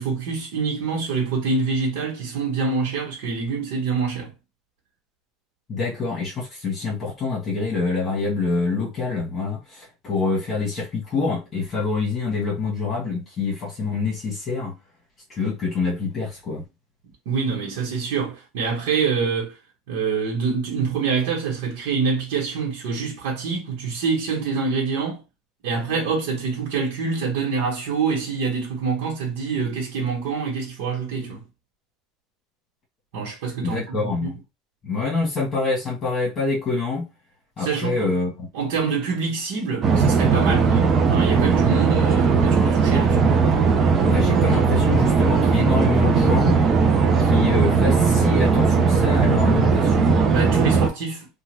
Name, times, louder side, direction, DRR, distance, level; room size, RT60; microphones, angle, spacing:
voice 1, 0.0-4.3 17.3-19.6 19.9-25.2 25.6-31.4 33.1-34.3 37.6-38.1 38.5-43.3 50.3-51.3, right 5 dB, 80° right, 1.1 m, -26 dB
voice 2, 5.7-14.7 15.3-16.6 33.6-34.3 34.8-37.0 37.6-38.5 44.0-46.6 47.2-50.2, left 4 dB, 30° left, 1.4 m, -26 dB
sound 1, 39.8-50.9, right 5 dB, 30° right, 0.5 m, -18 dB
2.9 x 2.3 x 3.2 m
supercardioid pair, 135°, 0 cm